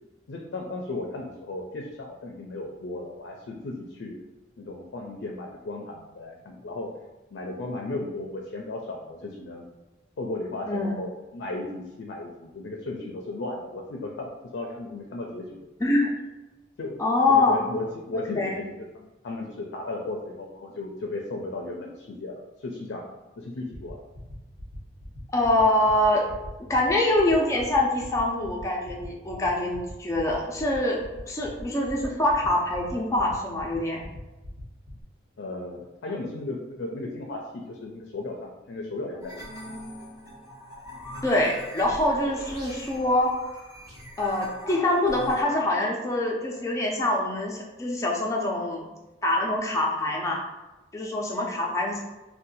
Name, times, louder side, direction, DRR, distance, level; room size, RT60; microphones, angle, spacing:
voice 1, 0.3-4.2 4.6-6.9 7.3-9.7 10.2-15.7 16.8-17.0 17.3-24.0 35.4-39.8, left 2 dB, 75° left, 0 dB, 0.4 m, -35 dB
voice 2, 10.7-11.0 15.8-16.1 17.0-17.6 18.4-18.6 25.3-26.2 26.7-34.0 41.2-43.3 44.2-48.9 49.2-50.4 50.9-52.0, left 1 dB, 15° left, -2 dB, 0.4 m, -24 dB
sound 1, 23.7-35.0, left 1 dB, 70° right, 1.1 m, -44 dB
sound 2, 39.2-45.4, equal, 20° right, 0.7 m, -42 dB
2.6 x 2.2 x 4.0 m, 1.1 s
head